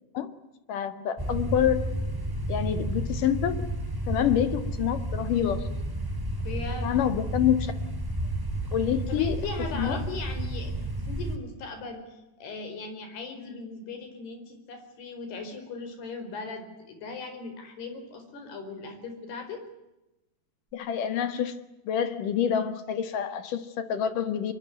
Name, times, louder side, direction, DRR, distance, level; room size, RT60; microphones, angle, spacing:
voice 1, 0.7-1.9 2.5-3.6 4.1-5.7 6.8-7.7 8.7-9.4 9.7-10.0 20.7-21.6 21.9-24.5, left 9 dB, 60° left, 11 dB, 3.1 m, -27 dB
Distant Blasts, 1.2-11.4, right 1 dB, 5° right, 2.9 m, -31 dB
voice 2, 6.4-6.9 9.1-19.6, left 4 dB, 85° left, 7 dB, 6.6 m, -38 dB
24.5 x 23.0 x 9.4 m, 0.94 s
omnidirectional pair, 4.5 m